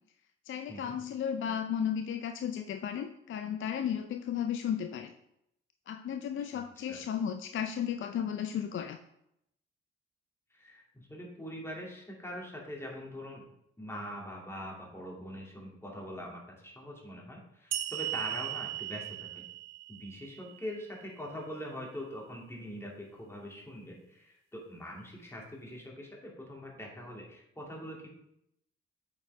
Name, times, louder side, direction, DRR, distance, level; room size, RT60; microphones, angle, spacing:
voice 1, 0.5-5.1 5.9-9.0, left 8 dB, 45° left, 7 dB, 0.5 m, -34 dB
voice 2, 6.5-7.0 10.5-13.5 13.8-19.4 19.9-28.1, equal, 10° left, -2 dB, 2.3 m, -43 dB
sound 1, 17.7-21.1, right 14 dB, 65° right, 0.6 m, -38 dB
8.3 x 4.8 x 3.3 m, 0.78 s
hypercardioid pair, 45°, 29 cm